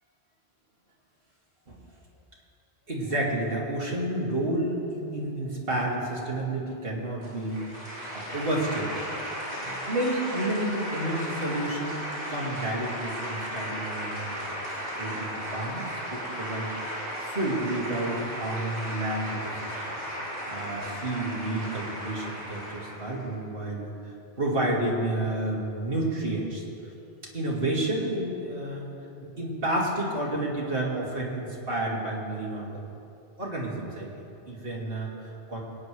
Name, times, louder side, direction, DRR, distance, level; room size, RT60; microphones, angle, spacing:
voice 1, 2.9-7.6 7.9-9.1 9.6-12.0 12.3-14.5 15.0-19.9 20.5-23.9 24.4-26.6 27.3-28.9 29.2-32.7 33.4-35.6, right 1 dB, 60° right, -4 dB, 2.4 m, -30 dB
sound 1, 7.2-23.3, equal, 25° right, 3.3 m, -35 dB
22.5 x 9.9 x 3.2 m, 2.8 s
omnidirectional pair, 1.1 m